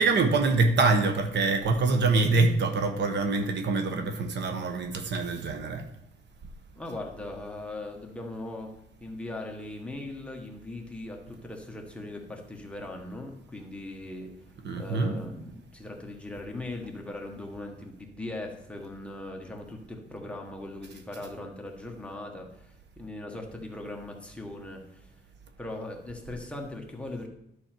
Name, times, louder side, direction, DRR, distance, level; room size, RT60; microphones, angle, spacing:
voice 1, 0.0-5.9 14.6-15.2, right 3 dB, 70° right, 1.2 m, -25 dB
voice 2, 6.7-8.7 9.0-14.3 14.8-25.1 25.6-27.3, left 2 dB, 5° left, 1.4 m, -39 dB
11.0 x 6.3 x 4.5 m
cardioid pair, 140°, 19 cm